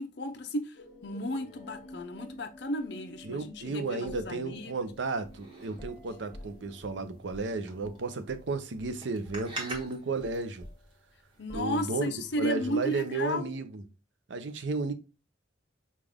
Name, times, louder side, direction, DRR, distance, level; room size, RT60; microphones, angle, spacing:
voice 1, 0.0-4.9 11.4-13.5, left 1 dB, 60° left, 0.6 m, -34 dB
sound 1, 0.8-8.4, left 1 dB, 40° left, 1.3 m, -52 dB
voice 2, 3.2-10.6 11.5-12.1 12.4-13.8 14.3-14.9, right 3 dB, 75° right, 0.6 m, -33 dB
sound 2, 4.1-8.5 8.8-9.0 9.2-12.2, left 1 dB, 20° left, 1.0 m, -51 dB
sound 3, 4.8-13.3, right 2 dB, 25° right, 1.2 m, -48 dB
5.3 x 2.4 x 3.4 m
head